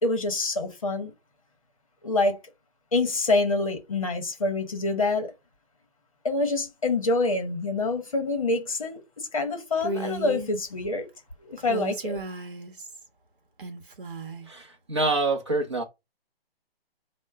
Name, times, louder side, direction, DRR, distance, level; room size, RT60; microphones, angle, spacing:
voice 1, 0.0-1.1 2.0-2.4 2.9-5.3 6.2-11.1 11.4-12.2, left 2 dB, 35° left, 0.8 m, -26 dB
Female speech woman speaking, 9.8-10.5 11.6-13.1 13.6-14.5, right 2 dB, 55° right, 1.0 m, -35 dB
voice 2, 14.5-15.8, right 3 dB, 30° right, 0.7 m, -26 dB
4.3 x 2.1 x 4.6 m
hypercardioid pair, 180°, 30 cm